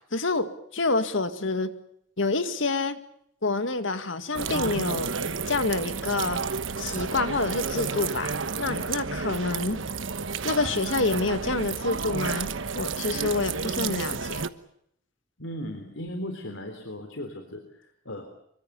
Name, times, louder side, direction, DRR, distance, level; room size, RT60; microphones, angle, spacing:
voice 1, 0.1-1.7 2.2-3.0 3.4-5.1 5.5-6.4 6.8-9.8 10.4-12.5 12.7-14.4, left 3 dB, 70° left, 10 dB, 2.1 m, -27 dB
sound 1, 4.3-14.5, right 5 dB, 75° right, 1.2 m, -31 dB
voice 2, 15.4-18.2, left 1 dB, 90° left, 5 dB, 3.7 m, -37 dB
26.5 x 24.0 x 7.0 m, 0.72 s
head